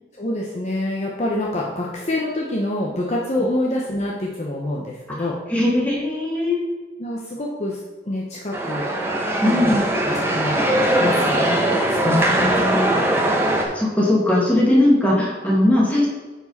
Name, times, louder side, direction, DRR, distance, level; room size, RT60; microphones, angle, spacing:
voice 1, 0.2-5.3 7.0-8.9 9.5-9.8 10.1-10.7 11.0-11.6 11.9-12.6, left 1 dB, 35° left, -2 dB, 0.8 m, -26 dB
voice 2, 5.5-6.8 9.4-10.2 12.0-13.2 13.6-16.1, left 1 dB, 10° left, -5 dB, 2.0 m, -20 dB
sound 1, 8.5-13.6, right 1 dB, 15° right, 0.9 m, -20 dB
9.5 x 4.8 x 4.1 m, 1.2 s
head